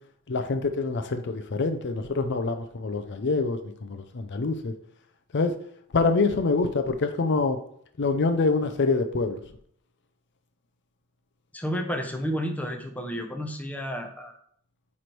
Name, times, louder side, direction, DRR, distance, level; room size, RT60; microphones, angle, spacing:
voice 1, 0.3-4.7 5.3-5.5 5.9-7.6 8.0-9.4, left 3 dB, 55° left, 8 dB, 0.5 m, -25 dB
voice 2, 11.5-14.4, equal, 5° left, 4 dB, 0.7 m, -31 dB
9.3 x 3.2 x 4.5 m, 0.64 s
head